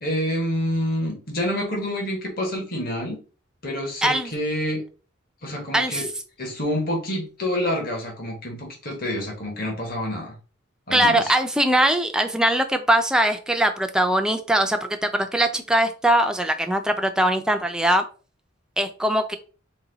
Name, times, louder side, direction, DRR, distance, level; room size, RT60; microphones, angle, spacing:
voice 1, 0.0-3.2 3.6-4.8 5.4-6.1 6.4-10.3 10.9-11.3, equal, 45° left, -1 dB, 1.2 m, -27 dB
voice 2, 4.0-4.3 5.7-6.0 10.9-18.1 18.8-19.4, right 1 dB, 5° right, 6 dB, 0.4 m, -21 dB
4.1 x 2.2 x 3.9 m, 0.36 s
head